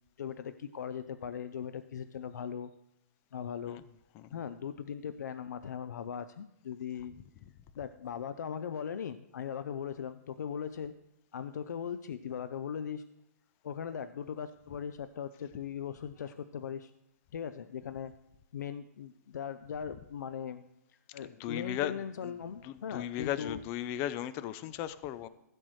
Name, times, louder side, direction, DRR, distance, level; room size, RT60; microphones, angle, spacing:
voice 1, 0.2-2.7 3.3-3.8 4.3-7.1 7.8-10.9 11.3-13.0 13.6-16.9 17.3-18.1 18.5-20.7 21.1-23.6, left 8 dB, 80° left, 13 dB, 0.5 m, -39 dB
voice 2, 21.2-25.3, left 12 dB, 25° left, 15 dB, 0.4 m, -37 dB
16.0 x 7.8 x 3.1 m, 0.89 s
hypercardioid pair, 150°, 9 cm